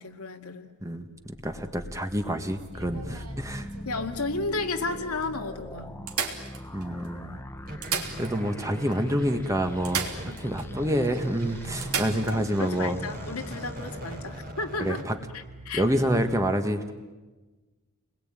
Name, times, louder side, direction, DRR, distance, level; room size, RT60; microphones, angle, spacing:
voice 1, 0.0-0.7 2.9-3.2 3.9-5.9 10.2-10.4 12.3-15.0 15.3-15.8, left 3 dB, 85° left, 4 dB, 2.2 m, -33 dB
voice 2, 0.8-3.7 6.7-7.4 8.2-13.0 14.8-15.2 15.7-16.9, equal, 15° right, 6 dB, 1.6 m, -28 dB
sound 1, 1.3-14.5, left 1 dB, 10° left, 0.9 m, -42 dB
sound 2, 2.6-4.2 4.9-5.0 5.2-5.3 6.1-7.1 7.7-8.7 8.9-9.0 9.8-10.7 11.0-11.1 11.8-12.4 14.4-14.5, right 6 dB, 90° right, 3.2 m, -34 dB
sound 3, 7.6-16.4, right 1 dB, 40° right, 2.9 m, -41 dB
29.5 x 21.5 x 9.0 m, 1.2 s
head